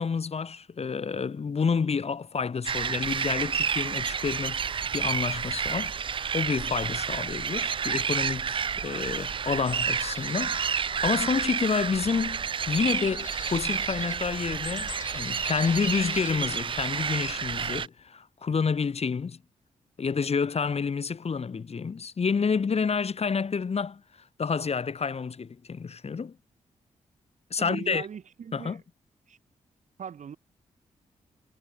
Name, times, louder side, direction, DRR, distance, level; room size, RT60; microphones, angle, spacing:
voice 1, 0.0-19.4 20.0-24.0 24.4-26.4 27.5-28.1 28.5-28.8, left 5 dB, 50° left, 1.9 m, -29 dB
sound 1, 2.7-17.9, right 6 dB, 40° right, 0.4 m, -30 dB
sound 2, 8.3-8.4 8.6-8.8 9.1-11.8 12.1-12.2 12.5-16.8 17.1-17.3 17.6-18.1, left 8 dB, 70° left, 2.6 m, -46 dB
voice 2, 27.6-28.8 29.3-29.4 30.0-30.4, right 7 dB, 65° right, 1.9 m, -39 dB
supercardioid pair, 45°, 13 cm